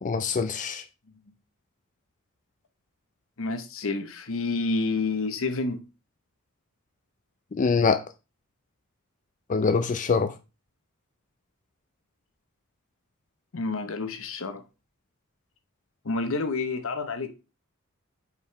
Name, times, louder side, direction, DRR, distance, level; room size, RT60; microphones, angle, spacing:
voice 1, 0.0-0.8 7.5-8.0 9.5-10.3, left 5 dB, 35° left, 0.4 m, -24 dB
voice 2, 3.4-5.8 13.5-14.6 16.0-17.3, left 3 dB, 65° left, 0.9 m, -29 dB
5.3 x 4.9 x 5.5 m
head